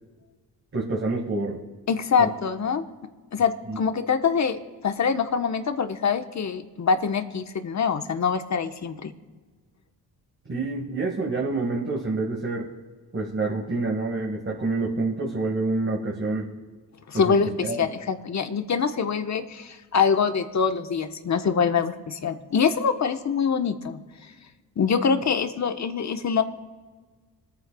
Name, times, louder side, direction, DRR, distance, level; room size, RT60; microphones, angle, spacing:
voice 1, 0.7-1.6 2.2-2.3 3.7-3.8 10.5-12.7 13.1-16.5 17.1-17.4 17.6-17.8, right 3 dB, 30° right, -2 dB, 1.9 m, -27 dB
voice 2, 1.9-2.8 3.3-9.1 17.1-24.3 24.8-26.4, left 6 dB, 45° left, 7 dB, 1.2 m, -24 dB
26.5 x 9.4 x 2.3 m, 1.4 s
supercardioid pair, 65°, 39 cm